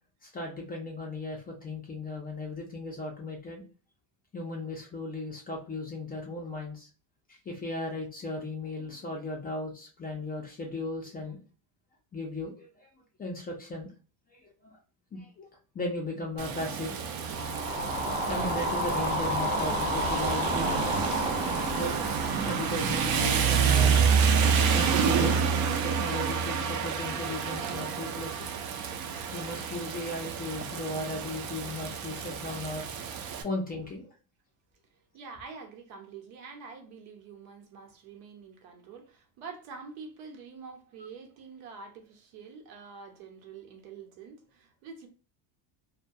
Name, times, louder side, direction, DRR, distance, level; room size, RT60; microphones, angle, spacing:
voice 1, 0.2-3.6 4.3-6.9 7.3-11.4 12.1-12.9 13.2-13.9 14.3-14.8 15.1-15.5 15.7-17.0 18.3-20.8 21.6-21.9 22.4-24.1 24.7-25.6 25.8-28.5 29.3-32.9 33.4-34.1, left 2 dB, 20° left, 0.4 m, -36 dB
Rain, 16.4-33.4, right 6 dB, 50° right, 0.5 m, -28 dB
sound 1, 17.3-25.5, equal, 15° right, 0.7 m, -32 dB
voice 2, 35.1-45.1, right 5 dB, 75° right, 0.9 m, -46 dB
2.2 x 2.2 x 2.6 m
cardioid pair, 125°, 47 cm